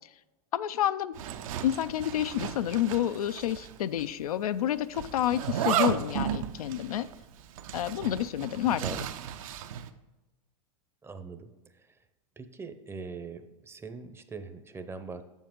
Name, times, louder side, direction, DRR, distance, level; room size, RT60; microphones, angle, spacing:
voice 1, 0.5-1.2 1.6-7.1 7.7-8.8, left 11 dB, 90° left, 13 dB, 0.4 m, -29 dB
Zipper (clothing), 1.1-3.7 4.0-4.1 4.9-9.9, right 9 dB, 70° right, 0.7 m, -34 dB
voice 2, 11.0-11.5 12.4-15.2, right 4 dB, 15° right, 9 dB, 0.6 m, -41 dB
7.2 x 7.1 x 3.7 m, 1.1 s
hypercardioid pair, 120°, 18 cm